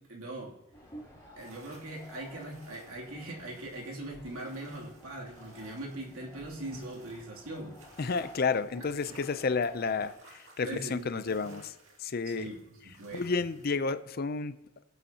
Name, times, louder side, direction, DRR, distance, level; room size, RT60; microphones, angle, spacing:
voice 1, 0.1-0.5 1.4-7.8 9.1-9.2 10.6-11.5 12.2-12.6 12.8-13.2, right 1 dB, 90° right, 2.8 m, -41 dB
sound 1, 0.7-10.1, equal, 15° left, 2.6 m, -53 dB
sound 2, 1.4-14.0, right 3 dB, 70° right, 2.2 m, -59 dB
voice 2, 8.0-11.7 12.0-12.5 13.1-14.5, left 4 dB, 45° left, 0.5 m, -31 dB
21.5 x 8.2 x 2.9 m
head